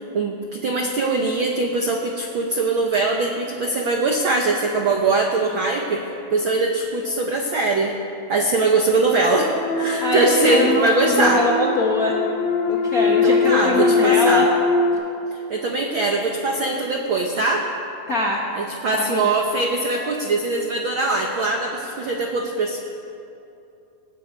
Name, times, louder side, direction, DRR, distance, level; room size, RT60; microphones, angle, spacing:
voice 1, 0.0-6.0 6.3-8.0 8.3-9.5 9.8-11.4 13.1-14.5 15.3-17.7 18.5-22.8, right 3 dB, 75° right, 2 dB, 1.1 m, -22 dB
sound 1, 9.4-14.9, left 4 dB, 65° left, 1.1 m, -21 dB
voice 2, 10.0-12.1 12.7-14.5 18.1-18.4 18.9-19.3, left 2 dB, 85° left, -2 dB, 0.7 m, -22 dB
19.0 x 17.0 x 4.5 m, 2.7 s
omnidirectional pair, 3.8 m